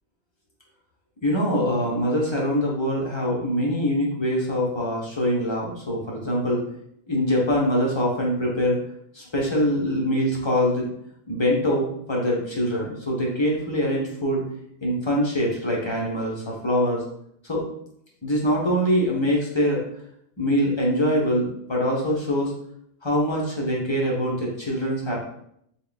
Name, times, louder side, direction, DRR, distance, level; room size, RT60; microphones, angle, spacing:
voice 1, 1.2-6.6 7.1-8.8 9.1-10.8 11.3-14.4 14.8-17.0 17.4-17.6 18.2-19.8 20.4-22.5 23.0-25.2, equal, 30° left, -3 dB, 0.6 m, -23 dB
3.6 x 2.3 x 3.9 m, 0.72 s
omnidirectional pair, 1.4 m